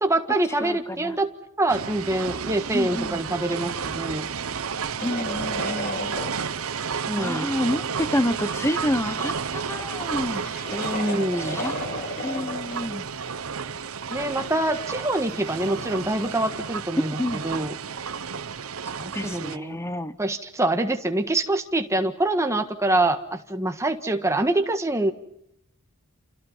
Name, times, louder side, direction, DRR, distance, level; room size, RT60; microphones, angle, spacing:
voice 1, 0.0-1.3 1.6-4.3 7.1-7.5 10.7-11.6 14.1-17.2 17.4-17.7 19.2-19.8 20.2-25.1, right 2 dB, 15° right, 6 dB, 1.6 m, -25 dB
voice 2, 0.6-1.2 2.7-3.2 5.0-6.2 7.1-10.4 11.4-11.7 12.2-13.1 17.0-17.4 19.0-20.2, left 1 dB, 15° left, 12 dB, 1.1 m, -28 dB
sound 1, 1.7-19.6, right 6 dB, 80° right, 1.0 m, -32 dB
sound 2, 5.0-6.8 7.4-7.5 8.6-13.2 13.5-13.6 15.3-16.4, left 1 dB, 45° left, 4.3 m, -36 dB
29.0 x 27.5 x 5.7 m, 0.76 s
head